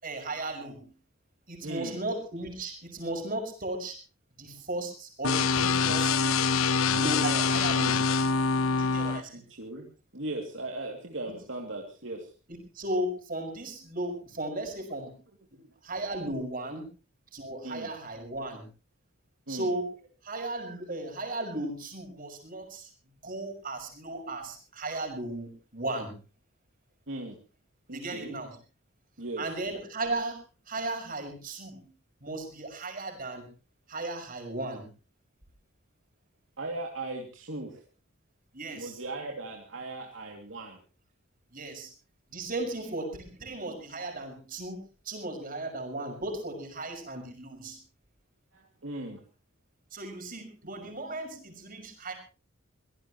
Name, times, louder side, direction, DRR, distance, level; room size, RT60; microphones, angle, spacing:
voice 1, 0.0-0.8 1.5-3.9 4.4-6.2 6.9-8.0 8.8-9.4 12.8-15.1 15.8-16.8 17.3-18.6 19.5-19.9 20.2-22.9 23.2-26.1 27.9-28.5 29.4-30.4 30.7-31.8 32.2-33.5 33.9-34.8 38.5-39.0 41.5-41.9 42.3-44.8 45.1-47.8 49.9-52.1, right 2 dB, 40° right, 4 dB, 6.0 m, -35 dB
voice 2, 1.6-2.0 9.3-9.9 10.1-12.3 15.5-15.7 17.6-17.9 19.5-19.7 27.1-27.4 27.9-28.3 29.2-29.4 36.6-37.8 38.7-40.8 48.5-49.2 50.6-50.9, right 2 dB, 65° right, 1 dB, 2.7 m, -38 dB
sound 1, 5.2-9.2, left 5 dB, 85° left, 0.9 m, -25 dB
24.5 x 17.5 x 3.1 m, 0.35 s
head